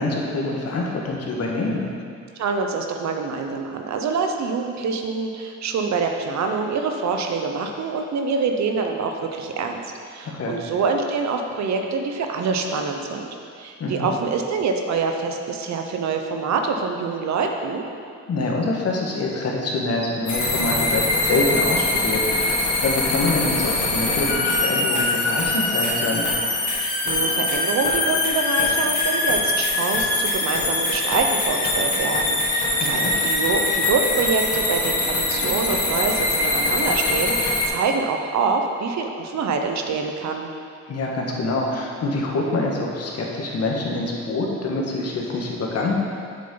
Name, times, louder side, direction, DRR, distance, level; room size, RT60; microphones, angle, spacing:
voice 1, 0.0-1.9 10.2-10.6 13.8-14.1 18.3-26.3 32.8-33.1 40.9-45.9, left 2 dB, 55° left, -1 dB, 1.6 m, -25 dB
voice 2, 2.4-9.8 10.1-13.3 13.6-17.8 26.8-40.5, right 4 dB, 65° right, 4 dB, 0.9 m, -25 dB
sound 1, 20.3-37.7, left 2 dB, 80° left, 2.1 m, -23 dB
7.8 x 7.2 x 4.0 m, 2.3 s
cardioid pair, 90°, 30 cm